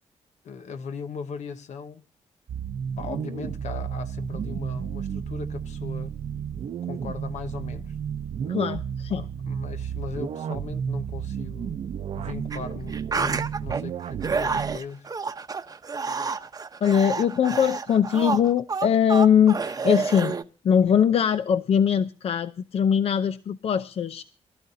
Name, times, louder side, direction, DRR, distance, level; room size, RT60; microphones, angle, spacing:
voice 1, 0.4-2.0 3.0-6.2 6.8-7.9 9.1-11.8 12.1-15.1, left 5 dB, 75° left, 1.3 m, -38 dB
sound 1, 2.5-14.8, right 8 dB, 60° right, 0.8 m, -32 dB
voice 2, 8.5-9.2 16.8-20.3 20.6-24.2, left 8 dB, 55° left, 0.6 m, -21 dB
Mix of zombie groans screams, 12.5-12.6 12.9-13.8 14.2-20.4, right 5 dB, 30° right, 0.9 m, -29 dB
23.5 x 13.0 x 2.7 m
wide cardioid pair, 130°, 12 cm